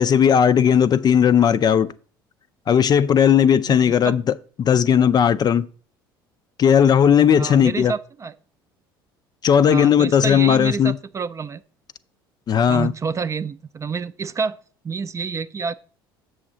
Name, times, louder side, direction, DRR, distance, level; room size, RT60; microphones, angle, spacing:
voice 1, 0.0-1.9 2.7-5.7 6.6-7.9 9.4-11.0 12.5-12.9, left 8 dB, 35° left, 0.4 m, -16 dB
voice 2, 3.7-4.2 7.3-8.3 9.7-11.6 12.7-14.6 14.8-15.7, right 5 dB, 25° right, 0.4 m, -28 dB
7.6 x 6.3 x 3.9 m
figure-of-eight pair, 60°, 12 cm